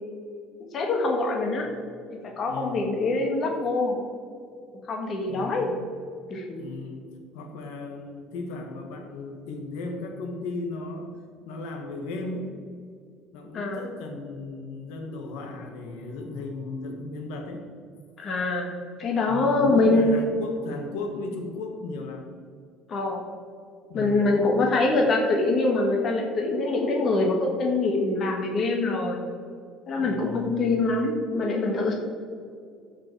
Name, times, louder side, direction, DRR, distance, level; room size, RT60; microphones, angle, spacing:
voice 1, 0.7-1.7 2.4-4.0 4.9-5.7 6.3-6.6 13.5-13.8 18.2-18.7 19.0-20.2 22.9-23.2 23.9-29.2 29.9-31.9, left 2 dB, 30° left, 1 dB, 1.4 m, -24 dB
voice 2, 2.5-2.9 5.3-5.8 6.5-7.1 7.3-11.1 11.4-12.6 13.3-17.6 19.3-22.3 23.9-24.4 30.0-30.5, left 2 dB, 85° left, 3 dB, 1.6 m, -36 dB
13.0 x 5.5 x 4.6 m, 2.2 s
cardioid pair, 170°, 0 cm